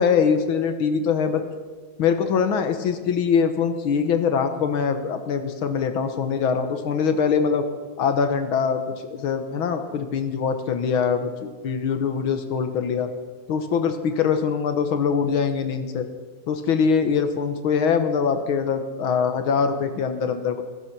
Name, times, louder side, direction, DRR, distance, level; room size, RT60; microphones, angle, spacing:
voice 1, 0.0-1.4 2.0-7.7 8.0-8.8 9.1-13.1 13.5-16.1 16.5-20.6, left 6 dB, 60° left, 7 dB, 1.5 m, -23 dB
16.5 x 14.5 x 6.0 m, 1.4 s
omnidirectional pair, 3.4 m